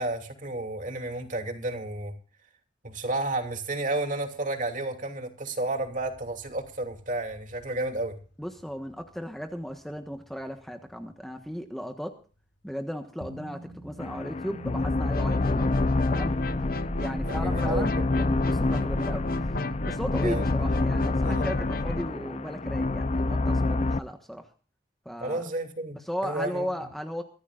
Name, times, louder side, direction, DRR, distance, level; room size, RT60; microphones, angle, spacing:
voice 1, 0.0-2.1 2.8-8.2 17.2-18.0 20.2-20.4 21.2-21.4 25.2-26.7, right 2 dB, 45° right, 4 dB, 2.9 m, -32 dB
sound 1, 5.8-11.0 13.2-22.7, equal, 75° left, 2.7 m, -50 dB
voice 2, 8.4-12.2 12.6-15.7 16.1-16.4 17.0-19.3 19.8-24.5 25.0-25.4 26.0-27.2, equal, ahead, 5 dB, 1.3 m, -35 dB
sound 2, 14.0-24.0, left 2 dB, 35° left, 0.5 m, -28 dB
sound 3, 15.1-22.0, left 2 dB, 50° left, 1.0 m, -31 dB
24.0 x 15.0 x 2.5 m, 0.39 s
head